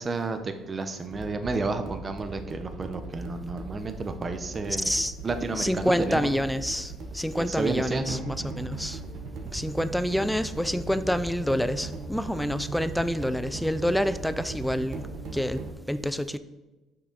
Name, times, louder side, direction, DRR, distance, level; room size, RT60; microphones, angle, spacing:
voice 1, 0.0-4.9 5.2-6.3 7.4-8.2, right 3 dB, 25° right, 0.7 m, -31 dB
sound 1, 1.1-15.7, right 3 dB, 65° right, 1.1 m, -38 dB
voice 2, 4.7-5.1 5.5-9.0 9.5-15.1 15.3-16.4, equal, ahead, 0.3 m, -28 dB
6.8 x 6.1 x 3.9 m
cardioid pair, 120°, 0 cm